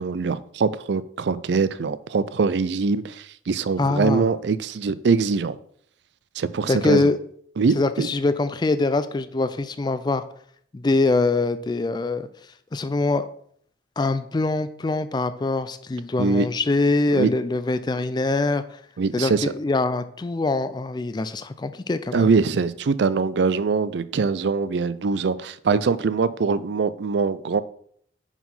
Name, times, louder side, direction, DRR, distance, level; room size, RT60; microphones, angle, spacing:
voice 1, 0.0-5.6 6.4-7.1 7.6-8.1 16.2-16.5 17.1-17.3 19.0-19.5 22.1-27.6, right 4 dB, 65° right, 16 dB, 0.4 m, -23 dB
voice 2, 3.8-4.3 6.7-7.2 7.7-10.2 10.7-12.3 12.7-13.3 14.0-18.8 19.1-22.3, left 3 dB, 25° left, 11 dB, 0.3 m, -23 dB
5.6 x 4.8 x 5.5 m, 0.62 s
head